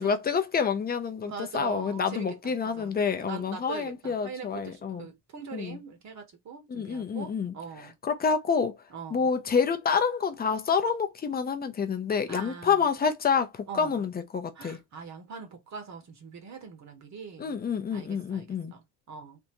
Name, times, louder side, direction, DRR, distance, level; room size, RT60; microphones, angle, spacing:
voice 1, 0.0-5.1 5.5-5.8 6.7-7.5 8.0-8.8 9.1-14.8 17.4-18.7, left 6 dB, 25° left, 0.5 m, -28 dB
voice 2, 1.2-7.9 8.9-9.3 12.3-12.9 13.7-14.0 14.5-17.6 17.9-19.4, right 5 dB, 40° right, 1.0 m, -42 dB
3.5 x 2.6 x 2.9 m
cardioid pair, 155°, 41 cm